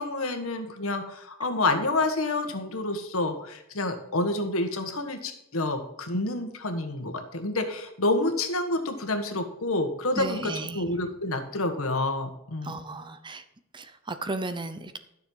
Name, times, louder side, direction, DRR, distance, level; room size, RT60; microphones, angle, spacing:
voice 1, 0.0-12.7, left 2 dB, 90° left, 6 dB, 1.6 m, -28 dB
voice 2, 10.1-10.8 12.6-13.4 13.7-15.0, right 2 dB, 25° right, 11 dB, 0.7 m, -34 dB
12.5 x 6.6 x 5.5 m, 0.81 s
head